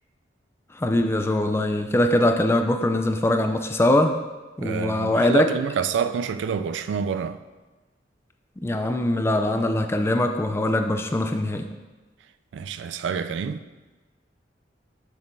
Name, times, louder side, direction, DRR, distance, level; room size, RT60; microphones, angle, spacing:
voice 1, 0.8-4.2 4.6-5.5 8.6-11.7, left 1 dB, 15° left, 0.4 m, -22 dB
voice 2, 4.6-7.4 12.5-13.7, right 7 dB, 75° right, 0.3 m, -27 dB
7.0 x 6.2 x 2.6 m
head